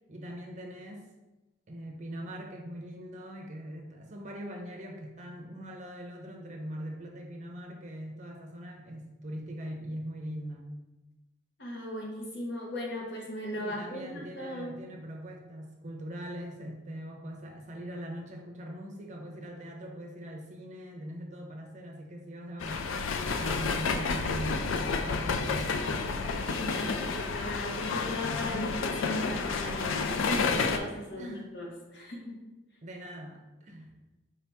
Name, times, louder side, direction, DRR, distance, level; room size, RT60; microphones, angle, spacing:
voice 1, 0.1-1.1 1.7-10.7 13.6-25.8 31.2-31.5 32.8-33.9, equal, 40° right, 1 dB, 0.6 m, -41 dB
voice 2, 11.6-14.7 26.4-32.4, left 1 dB, 55° left, -2 dB, 1.0 m, -37 dB
sound 1, 22.6-30.8, left 4 dB, 90° left, 0.4 m, -30 dB
5.0 x 2.8 x 3.4 m, 1.1 s
head